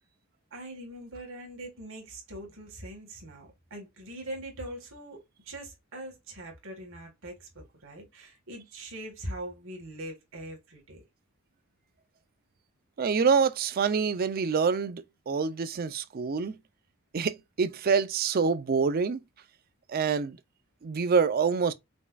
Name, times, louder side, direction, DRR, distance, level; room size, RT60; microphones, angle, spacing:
voice 1, 0.5-11.0, right 1 dB, 60° right, 1.7 m, -42 dB
voice 2, 13.0-16.6 17.1-19.2 19.9-20.4 20.8-21.7, right 5 dB, 45° right, 0.4 m, -26 dB
5.2 x 2.3 x 2.4 m
head